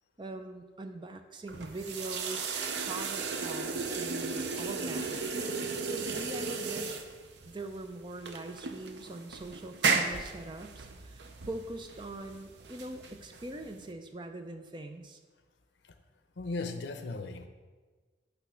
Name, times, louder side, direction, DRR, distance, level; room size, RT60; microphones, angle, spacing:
voice 1, 0.2-5.1 5.8-7.0 7.5-15.2, right 2 dB, 25° right, 6 dB, 0.4 m, -42 dB
sound 1, 1.5-13.9, right 4 dB, 75° right, 0.6 m, -35 dB
voice 2, 16.4-17.5, left 3 dB, 80° left, 8 dB, 0.6 m, -37 dB
8.2 x 3.4 x 5.7 m, 1.4 s
head